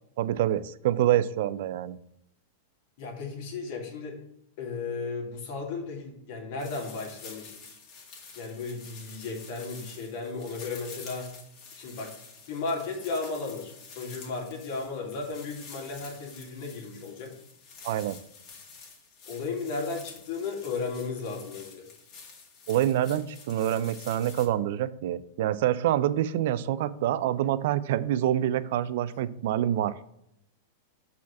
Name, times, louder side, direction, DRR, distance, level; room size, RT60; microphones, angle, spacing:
voice 1, 0.2-2.0 17.8-18.2 22.7-29.9, right 12 dB, 65° right, 15 dB, 0.4 m, -26 dB
voice 2, 3.0-4.2 4.6-7.6 8.4-11.3 11.8-12.1 12.5-17.3 19.3-21.9, left 4 dB, 60° left, 0 dB, 2.3 m, -35 dB
sound 1, 6.6-24.5, left 5 dB, 40° left, 2.2 m, -48 dB
6.2 x 4.3 x 5.9 m, 0.78 s
hypercardioid pair, 120°, 0 cm